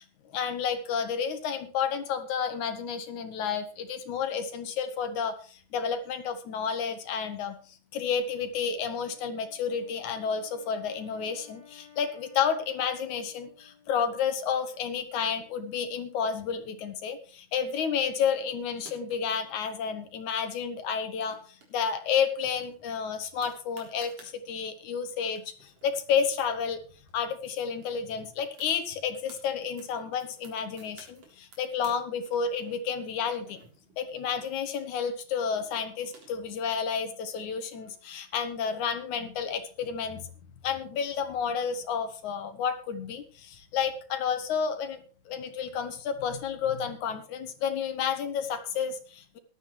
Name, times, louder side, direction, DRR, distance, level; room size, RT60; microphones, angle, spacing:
voice 1, 0.0-7.6 7.9-26.8 27.1-33.6 34.0-40.3 40.6-49.4, left 7 dB, 80° left, 8 dB, 3.0 m, -31 dB
Wind instrument woodwind instrument, 9.0-14.4, left 8 dB, 15° left, 4.5 m, -56 dB
sound 1, 18.7-19.5 20.9-21.7 22.0-22.1 22.4-24.3 25.0-25.1 25.3-27.1 27.4-27.5 27.8-29.4 29.8-32.0 32.3-34.9 35.7-36.7, right 3 dB, 55° right, 4.8 m, -55 dB
17.5 x 12.5 x 3.2 m, 0.38 s
omnidirectional pair, 3.4 m